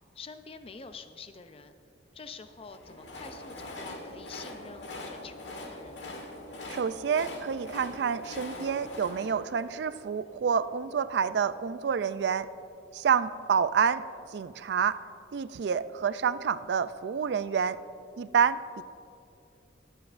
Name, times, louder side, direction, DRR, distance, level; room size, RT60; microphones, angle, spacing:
voice 1, 0.2-1.7 2.1-6.3, left 4 dB, 30° left, 9 dB, 0.5 m, -47 dB
Train, 2.5-10.7, left 2 dB, 75° left, 1.4 m, -43 dB
voice 2, 6.7-12.5 12.9-14.0 14.3-15.0 15.3-17.8 18.2-18.8, right 7 dB, 65° right, 14 dB, 0.3 m, -28 dB
21.0 x 8.2 x 2.5 m, 2.5 s
head